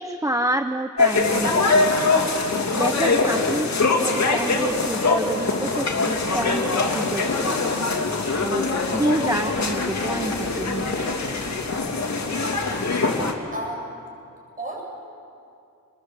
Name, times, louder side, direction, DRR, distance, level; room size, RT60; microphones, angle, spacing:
voice 1, 0.0-2.2 2.7-7.7 8.3-11.2, right 1 dB, 10° right, 7 dB, 0.8 m, -28 dB
sound 1, 1.0-13.3, left 3 dB, 55° left, 3.1 m, -23 dB
voice 2, 13.0-14.0 14.6-14.9, right 1 dB, 25° right, -1 dB, 7.7 m, -34 dB
30.0 x 20.0 x 8.2 m, 2.5 s
wide cardioid pair, 120°, 33 cm